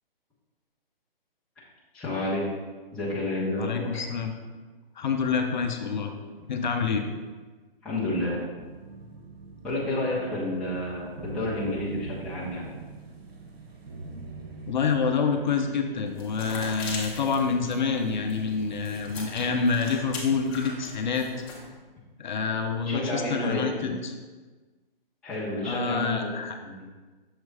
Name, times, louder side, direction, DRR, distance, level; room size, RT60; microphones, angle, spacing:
voice 1, 1.9-2.5 2.9-4.0 7.8-8.4 9.6-12.7 22.9-23.9 25.2-26.3 26.6-26.7, left 1 dB, 5° left, -9 dB, 0.6 m, -30 dB
voice 2, 3.6-4.3 5.0-6.1 6.5-7.0 14.7-21.3 22.2-24.1 25.6-26.6, left 5 dB, 50° left, 4 dB, 0.6 m, -27 dB
sound 1, 8.6-21.2, right 3 dB, 85° right, 1.0 m, -44 dB
sound 2, 16.1-21.7, left 3 dB, 25° left, 1.0 m, -40 dB
6.5 x 3.1 x 4.6 m, 1.3 s
hypercardioid pair, 150°, 30 cm